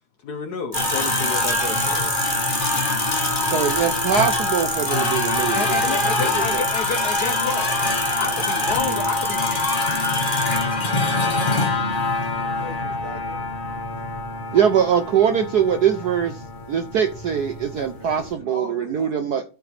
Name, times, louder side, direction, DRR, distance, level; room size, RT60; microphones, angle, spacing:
voice 1, 0.2-2.1 5.5-7.7 8.2-10.1 10.5-10.6 14.5-14.6 17.8-17.9, left 5 dB, 65° left, 1.0 m, -31 dB
sound 1, 0.7-18.3, left 3 dB, 30° left, 1.0 m, -25 dB
sound 2, 0.7-10.6, right 3 dB, 25° right, 1.3 m, -29 dB
voice 2, 3.5-6.6 14.5-19.4, right 8 dB, 65° right, 0.9 m, -22 dB
voice 3, 12.3-13.4 18.0-19.1, right 1 dB, 40° right, 0.7 m, -39 dB
13.0 x 4.6 x 3.4 m
omnidirectional pair, 2.4 m